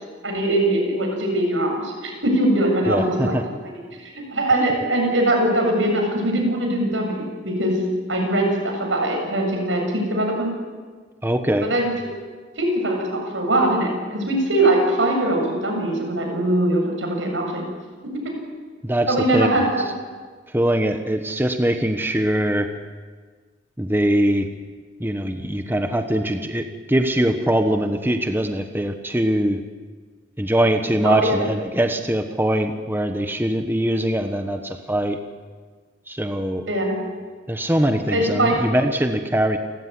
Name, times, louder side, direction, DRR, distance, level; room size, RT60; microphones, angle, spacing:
voice 1, 0.2-3.3 3.6-3.7 4.1-7.8 8.1-10.5 11.6-11.9 12.6-17.6 19.1-19.8 31.0-31.5 36.7-37.1 38.1-38.5, right 1 dB, 90° right, 1 dB, 7.6 m, -21 dB
voice 2, 2.8-3.4 11.2-11.7 18.8-19.7 20.5-22.7 23.8-24.5 25.0-29.6 30.4-35.2 36.1-36.6 37.5-39.6, right 1 dB, 10° right, 6 dB, 1.2 m, -22 dB
29.5 x 14.5 x 9.7 m, 1.5 s
head